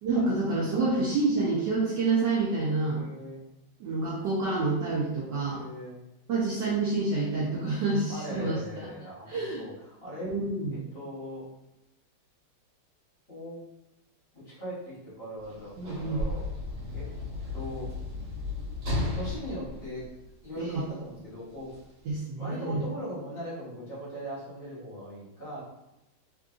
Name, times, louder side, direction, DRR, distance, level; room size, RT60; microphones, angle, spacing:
voice 1, 0.0-3.0 3.8-5.6 6.3-8.9 9.3-9.6 10.2-10.9 15.8-16.2 20.6-20.8 22.0-22.8, right 3 dB, 70° right, -5 dB, 1.1 m, -28 dB
voice 2, 2.9-3.4 5.5-6.0 8.1-10.3 10.7-11.4 13.3-13.6 14.3-16.5 16.9-17.1 17.5-17.9 19.1-20.1 20.4-21.7 22.4-25.6, equal, 45° left, -10 dB, 1.5 m, -40 dB
Sliding door / Slam, 15.4-20.8 21.7-21.8, left 2 dB, 50° right, 1.7 m, -34 dB
3.6 x 2.5 x 2.4 m, 0.91 s
omnidirectional pair, 2.3 m